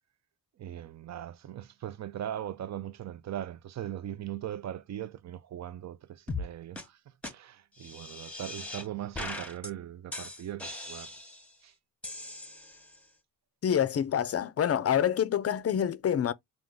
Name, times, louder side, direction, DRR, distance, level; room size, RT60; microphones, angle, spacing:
voice 1, 0.6-11.1 11.6-11.7, right 11 dB, 40° right, 0.5 m, -40 dB
sound 1, 6.3-6.5 6.8-6.9 7.2-7.3 7.8-8.9 9.1-9.7 10.1-11.5 12.0-13.0, left 2 dB, 5° left, 1.0 m, -39 dB
voice 2, 13.6-16.3, left 9 dB, 35° left, 0.5 m, -27 dB
3.6 x 2.5 x 3.7 m
supercardioid pair, 60°, 42 cm